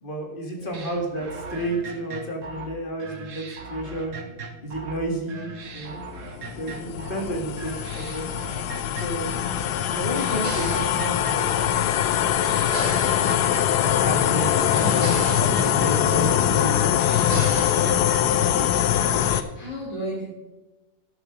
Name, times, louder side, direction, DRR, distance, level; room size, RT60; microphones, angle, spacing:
voice 1, 0.0-4.3 4.6-6.0 6.6-8.3 8.9-9.4 9.9-11.8 12.7-13.0 13.8-16.9, right 1 dB, 25° left, 1 dB, 2.3 m, -31 dB
voice 2, 0.5-0.9 5.3-5.5 6.8-7.1 9.8-10.0 14.8-15.1 15.9-16.4 17.3-17.7 19.2-20.2, right 1 dB, 45° left, -6 dB, 3.6 m, -37 dB
sound 1, 0.7-5.0 5.3-7.3 7.6-9.6 9.9-11.9 12.1-14.2 14.4-16.4 16.7-18.7 19.0-19.4, right 4 dB, 45° right, 1.4 m, -37 dB
sound 2, 5.9-19.4, left 10 dB, 70° left, 1.2 m, -23 dB
12.5 x 9.7 x 5.0 m, 1.1 s
omnidirectional pair, 2.0 m